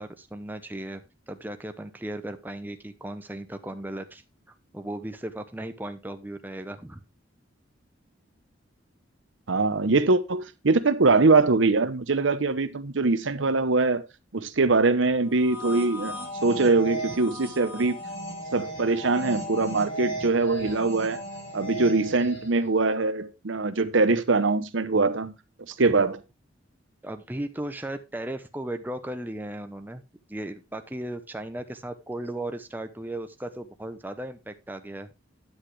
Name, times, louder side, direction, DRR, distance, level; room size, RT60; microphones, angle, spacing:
voice 1, 0.0-4.2 4.5-7.0 25.8-26.1 27.0-30.0 30.3-35.1, right 1 dB, 10° right, 0.7 m, -36 dB
voice 2, 9.5-14.0 14.3-18.0 18.5-21.2 21.5-25.3 25.8-26.2, right 3 dB, 75° right, 0.8 m, -23 dB
sound 1, 15.3-22.7, right 1 dB, 65° left, 6.5 m, -36 dB
10.5 x 8.1 x 3.2 m
head